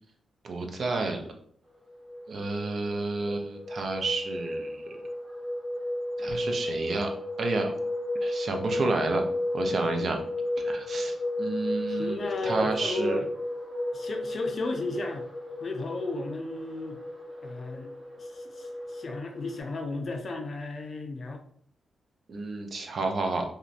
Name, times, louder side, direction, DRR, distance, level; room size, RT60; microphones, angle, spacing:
voice 1, 0.4-1.3 2.3-4.8 6.2-7.1 7.4-7.7 8.2-9.2 9.5-10.2 10.6-13.2 22.3-23.4, right 3 dB, 60° right, 3 dB, 0.4 m, -30 dB
sound 1, 1.9-19.6, left 1 dB, 45° right, 0.8 m, -33 dB
voice 2, 11.9-13.3 13.9-15.3 15.6-17.0 17.4-17.9 18.2-21.4, left 2 dB, 50° left, 4 dB, 0.5 m, -34 dB
2.8 x 2.1 x 2.4 m, 0.62 s
cardioid pair, 65°, 0 cm